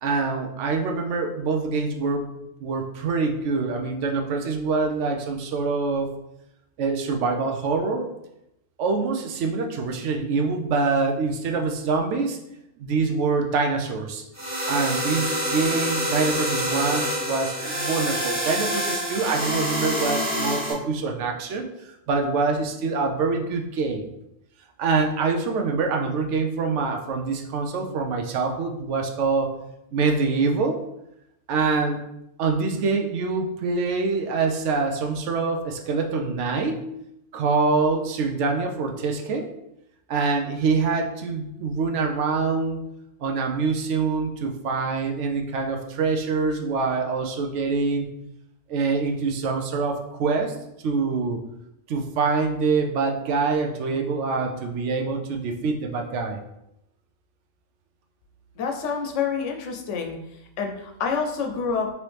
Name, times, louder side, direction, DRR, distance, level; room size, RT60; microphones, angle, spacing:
voice 1, 0.0-2.3 2.6-6.1 6.8-8.1 8.8-12.4 12.8-14.2 14.7-24.1 24.8-29.5 29.9-30.8 31.5-32.0 32.4-36.9 37.3-39.5 40.1-42.8 43.2-48.1 48.7-50.6 50.8-51.4 51.9-56.4, right 4 dB, 75° right, 3 dB, 0.9 m, -25 dB
sound 1, 14.3-20.7, equal, 15° right, 1.0 m, -27 dB
voice 2, 58.6-60.2 60.6-61.9, left 5 dB, 75° left, 3 dB, 0.9 m, -27 dB
4.1 x 3.0 x 3.2 m, 0.85 s
omnidirectional pair, 1.3 m